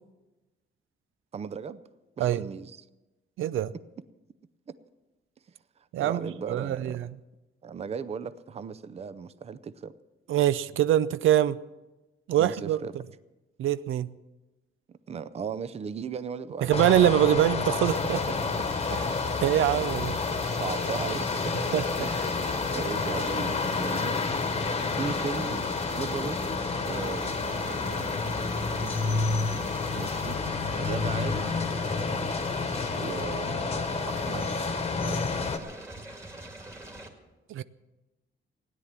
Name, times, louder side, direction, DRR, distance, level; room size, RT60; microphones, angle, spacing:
voice 1, 1.3-1.8 2.2-2.8 6.0-7.0 7.6-9.9 12.4-13.0 15.1-17.0 18.3-18.4 18.9-19.0 19.9-20.0 20.3-21.6 22.0-22.4 22.7-25.7 26.0-26.4 26.9-29.0 29.9-30.4 30.8-31.6 32.9-34.5 35.0-35.6, right 6 dB, 30° right, 14 dB, 0.5 m, -37 dB
voice 2, 3.4-3.7 5.9-6.3 6.5-7.1 10.3-11.6 12.3-12.8 13.6-14.1 16.6-18.2 19.4-20.2 21.7-22.1 37.5-37.6, right 12 dB, 85° right, 16 dB, 0.5 m, -24 dB
sound 1, 16.7-35.6, left 4 dB, 30° left, 1.2 m, -29 dB
sound 2, 17.9-37.1, right 1 dB, 15° right, 2.0 m, -43 dB
16.5 x 10.0 x 7.3 m, 1.1 s
wide cardioid pair, 150°, 20 cm